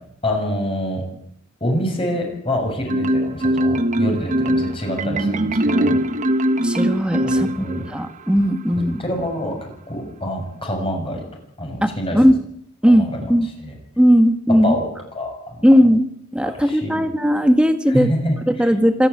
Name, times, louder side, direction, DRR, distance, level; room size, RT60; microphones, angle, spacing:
voice 1, 0.2-1.0 1.6-6.0 7.2-7.9 9.0-11.2 11.6-12.2 12.9-13.3 13.6-13.7 14.6-14.9 15.1-15.7 16.4-17.1 17.9-18.7, equal, 30° left, 2 dB, 7.1 m, -26 dB
Marimba xylophone, 2.9-8.0, right 1 dB, 40° right, 1.1 m, -20 dB
voice 2, 6.6-9.0 11.8-12.4 12.8-13.5 14.0-14.8 15.6-16.1 16.3-18.1 18.5-19.1, equal, 5° right, 7 dB, 1.8 m, -17 dB
26.0 x 10.5 x 9.9 m, 0.70 s
head